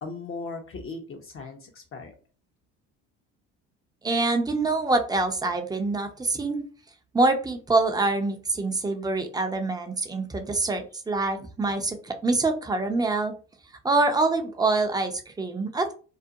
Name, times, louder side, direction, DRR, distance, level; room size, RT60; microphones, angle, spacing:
voice 1, 0.0-2.1, left 3 dB, 35° left, 3 dB, 0.6 m, -38 dB
voice 2, 4.0-6.6 7.1-13.3 13.8-15.9, right 3 dB, 10° right, 5 dB, 0.5 m, -25 dB
2.4 x 2.1 x 2.7 m, 0.38 s
hypercardioid pair, 65°, 36 cm